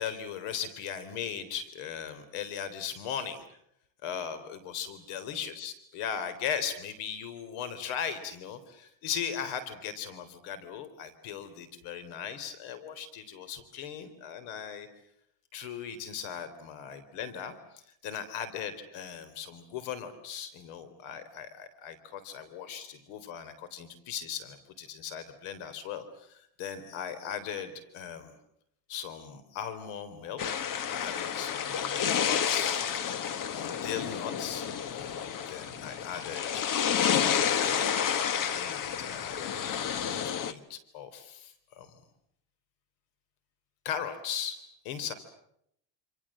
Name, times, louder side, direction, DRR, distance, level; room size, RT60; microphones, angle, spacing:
voice 1, 0.0-3.4 4.0-14.9 15.5-28.3 28.9-32.9 33.5-35.2 35.5-36.7 37.2-37.7 38.2-39.5 39.9-41.9 43.8-44.6 44.8-45.1, left 8 dB, 85° left, 11 dB, 3.9 m, -38 dB
sound 1, 30.4-40.5, left 8 dB, 40° left, 1.5 m, -30 dB
28.0 x 28.0 x 7.6 m, 0.76 s
cardioid pair, 160°, 48 cm